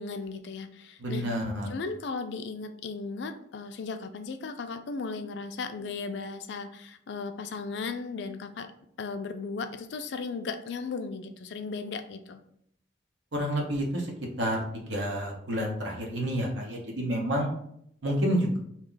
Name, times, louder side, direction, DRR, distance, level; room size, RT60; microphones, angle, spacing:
voice 1, 0.0-1.3 1.7-8.7 9.0-12.4, left 4 dB, 70° left, 8 dB, 0.4 m, -36 dB
voice 2, 1.0-1.7 13.3-14.1 14.4-17.5 18.0-18.6, equal, 75° right, 0 dB, 0.9 m, -29 dB
2.8 x 2.3 x 3.8 m, 0.70 s
head